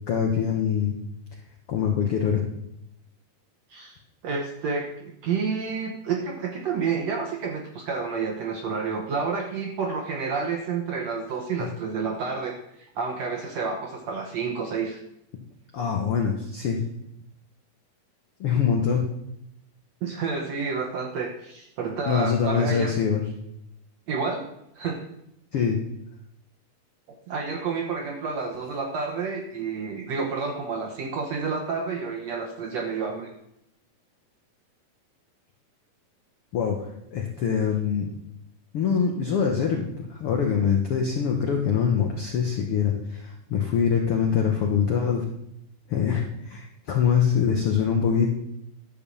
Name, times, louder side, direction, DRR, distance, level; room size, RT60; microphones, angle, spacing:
voice 1, 0.1-0.9 1.7-2.4 11.6-11.7 15.7-16.8 18.4-19.1 22.1-23.2 25.5-25.8 36.5-38.1 38.7-45.2 45.9-48.3, left 7 dB, 80° left, 2 dB, 1.2 m, -24 dB
voice 2, 4.2-15.0 20.0-22.9 24.1-24.5 24.7-25.0 27.3-33.3, right 5 dB, 70° right, 1 dB, 1.6 m, -29 dB
11.0 x 5.3 x 7.0 m, 0.82 s
omnidirectional pair, 4.1 m